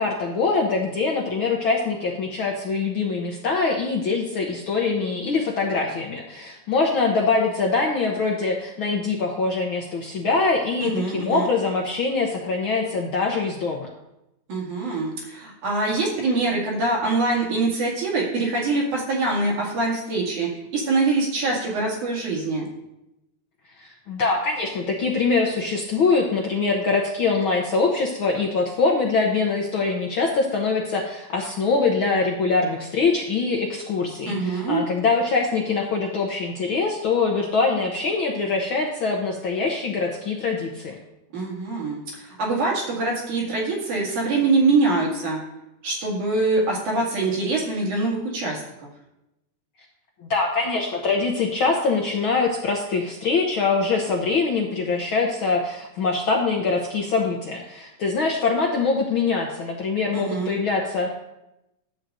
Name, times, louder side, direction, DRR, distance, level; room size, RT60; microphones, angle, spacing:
voice 1, 0.0-13.9 23.8-40.9 50.3-61.1, left 4 dB, 65° left, 0 dB, 1.2 m, -23 dB
voice 2, 10.8-11.5 14.5-22.7 34.3-34.8 41.3-45.4 45.8-48.6 60.1-60.6, right 3 dB, 85° right, -4 dB, 3.8 m, -24 dB
11.0 x 3.9 x 7.6 m, 0.89 s
omnidirectional pair, 3.4 m